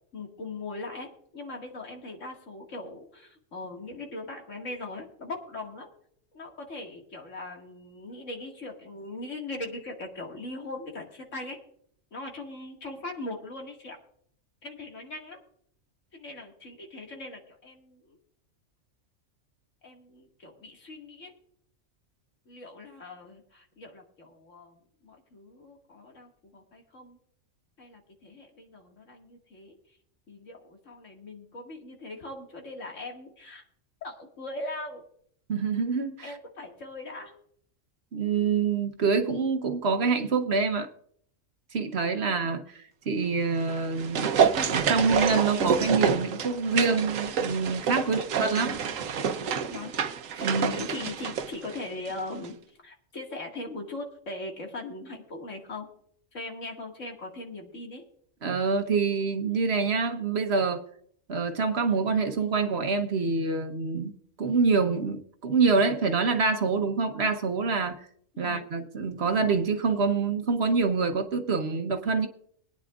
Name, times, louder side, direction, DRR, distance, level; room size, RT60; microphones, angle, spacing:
voice 1, 0.1-1.1 1.3-5.9 6.3-11.6 12.1-14.0 14.6-15.4 16.1-18.2 19.8-21.3 22.5-27.2 27.8-29.8 30.3-33.6 34.0-35.0 36.2-37.3 42.2-42.4 48.0-48.2 49.7-49.9 50.3-52.6 52.8-55.9 56.3-58.0 68.3-68.7, left 2 dB, 70° left, 1 dB, 2.4 m, -40 dB
voice 2, 35.5-36.4 38.1-40.9 41.7-44.4 44.7-48.8 50.4-50.7 58.4-60.8 61.3-64.1 64.4-68.0 68.4-72.3, right 4 dB, 55° right, 7 dB, 1.2 m, -26 dB
sound 1, 43.6-52.2 52.4-52.5, right 6 dB, 85° right, 1.2 m, -28 dB
23.0 x 9.6 x 2.4 m, 0.62 s
omnidirectional pair, 1.3 m